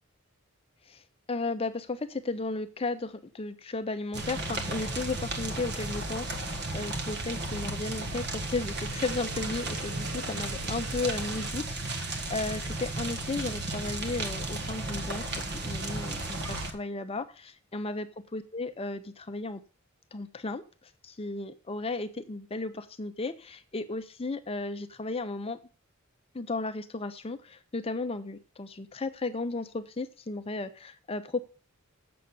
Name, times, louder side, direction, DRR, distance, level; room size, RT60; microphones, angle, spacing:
voice 1, 0.9-19.6 20.1-20.6 21.0-25.6 26.3-31.4, left 3 dB, 25° left, 10 dB, 0.6 m, -35 dB
sound 1, 4.1-16.7, right 2 dB, 50° right, 1.7 m, -34 dB
sound 2, 8.9-11.5 12.5-12.6 15.9-16.6, right 2 dB, 75° right, 3.3 m, -44 dB
7.7 x 6.6 x 8.1 m, 0.36 s
head